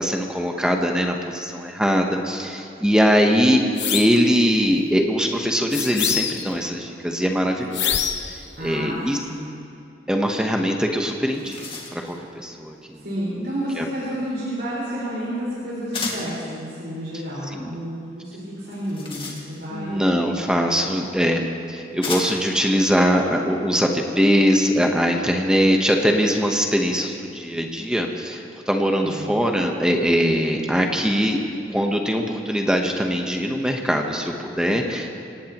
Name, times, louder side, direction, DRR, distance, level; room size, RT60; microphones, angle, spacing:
voice 1, 0.0-8.0 8.3-8.4 8.6-9.2 10.1-11.6 11.9-13.0 13.8-13.9 17.5-17.8 19.7-21.4 21.7-31.4 31.7-35.1, equal, 5° right, 2 dB, 1.0 m, -21 dB
sound 1, 3.8-4.2 5.7-6.5 7.7-8.4, left 9 dB, 85° left, 1.0 m, -25 dB
voice 2, 8.5-9.0 9.3-9.5 13.0-20.1 28.9-29.3, equal, 75° right, -9 dB, 4.9 m, -30 dB
sound 2, 10.8-10.9 11.2-12.2 15.9-16.4 18.6-19.8 20.9-21.0 22.0-22.6, left 3 dB, 30° left, 2.0 m, -33 dB
26.0 x 17.5 x 3.0 m, 2.6 s
head